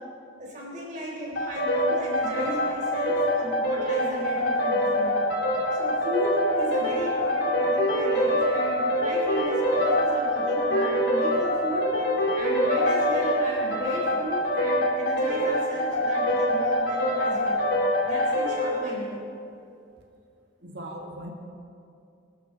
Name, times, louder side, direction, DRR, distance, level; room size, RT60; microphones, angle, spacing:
voice 1, 0.4-5.2 5.7-11.8 12.4-17.6 18.0-19.2, equal, 40° right, -4 dB, 4.2 m, -35 dB
sound 1, 1.3-18.8, equal, 70° left, 2.8 m, -25 dB
voice 2, 20.6-21.3, right 1 dB, 60° right, 0 dB, 1.7 m, -39 dB
21.5 x 13.0 x 4.0 m, 2.5 s
head